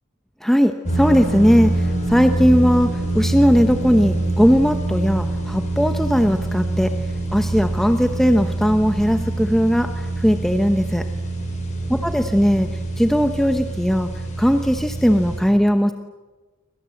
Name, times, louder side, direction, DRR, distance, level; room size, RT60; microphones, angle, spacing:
voice 1, 0.4-6.9 7.3-11.1 12.0-12.7 13.0-14.1 14.4-15.9, equal, ahead, 6 dB, 1.0 m, -18 dB
sound 1, 0.8-15.4, right 2 dB, 35° left, 7.2 m, -25 dB
29.0 x 25.0 x 7.8 m, 1.3 s
head